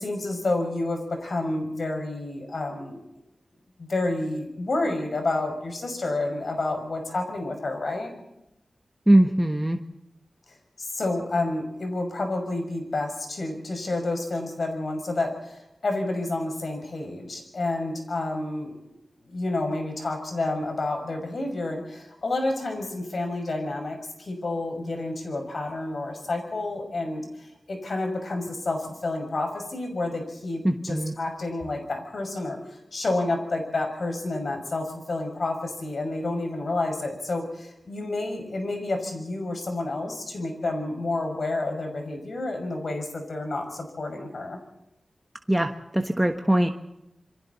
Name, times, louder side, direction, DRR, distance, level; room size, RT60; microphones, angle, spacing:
voice 1, 0.0-3.0 3.8-8.1 10.5-18.7 19.3-44.6, left 2 dB, 60° left, 4 dB, 6.1 m, -29 dB
voice 2, 9.1-9.8 30.6-31.1 45.5-46.7, right 1 dB, 10° right, 4 dB, 1.2 m, -21 dB
28.0 x 23.5 x 4.2 m, 0.89 s
wide cardioid pair, 85°, 0 cm